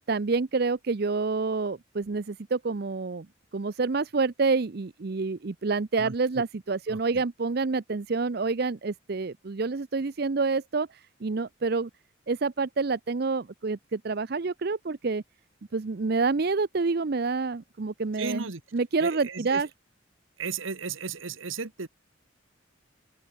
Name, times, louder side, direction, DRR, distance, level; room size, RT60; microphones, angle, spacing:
voice 1, 0.1-3.3 3.5-11.9 12.3-15.2 15.7-19.7, right 4 dB, 50° right, 0.6 m, -28 dB
voice 2, 6.0-6.4 6.9-7.2 18.2-18.6 19.0-19.6 20.4-21.9, right 4 dB, 80° right, 1.5 m, -35 dB
open air
head